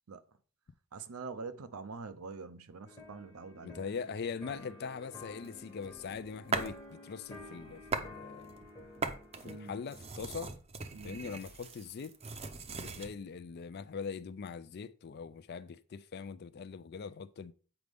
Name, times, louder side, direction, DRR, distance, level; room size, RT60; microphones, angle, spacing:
voice 1, 0.9-3.8 9.4-9.7 10.9-11.2, right 4 dB, 85° right, 0.6 m, -45 dB
sound 1, 2.8-10.1, left 2 dB, 20° left, 1.0 m, -52 dB
voice 2, 3.6-8.6 9.4-10.5 11.0-12.2 12.7-17.5, left 5 dB, 50° left, 0.4 m, -42 dB
sound 2, 5.4-6.8 7.2-8.1 8.5-13.1, right 4 dB, 30° right, 0.6 m, -40 dB
7.9 x 5.0 x 3.5 m
head